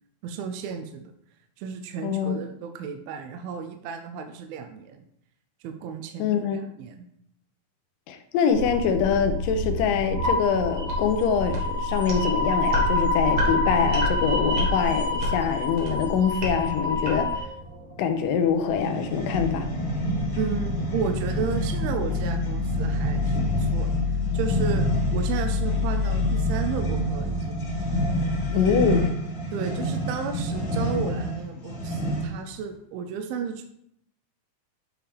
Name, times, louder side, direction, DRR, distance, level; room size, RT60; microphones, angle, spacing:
voice 1, 0.2-1.1 1.6-5.0 5.6-7.1 20.4-24.0 24.3-27.6 28.5-28.8 29.5-33.6, right 6 dB, 85° right, 6 dB, 2.4 m, -33 dB
voice 2, 2.0-2.4 6.2-6.6 8.1-17.3 18.0-19.7 28.5-29.1, left 7 dB, 80° left, 7 dB, 2.1 m, -24 dB
sound 1, 8.5-17.4, left 2 dB, 50° right, 2.1 m, -26 dB
sound 2, 13.2-29.0, left 4 dB, 25° left, 1.1 m, -31 dB
sound 3, 18.7-32.5, right 1 dB, 45° left, 1.6 m, -29 dB
8.9 x 4.7 x 3.4 m, 0.73 s
omnidirectional pair, 4.3 m